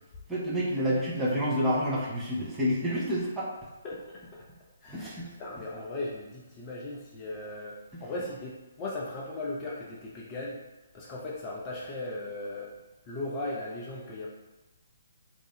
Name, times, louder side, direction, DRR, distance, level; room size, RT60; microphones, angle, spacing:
voice 1, 0.3-3.5 4.9-5.3 7.9-8.0, equal, 5° right, -7 dB, 0.8 m, -29 dB
voice 2, 3.8-4.4 4.8-5.1 5.4-10.6 10.9-12.7 13.1-14.3, left 2 dB, 25° left, -4 dB, 0.5 m, -37 dB
2.9 x 2.5 x 3.8 m, 1.1 s
figure-of-eight pair, 135°, 0 cm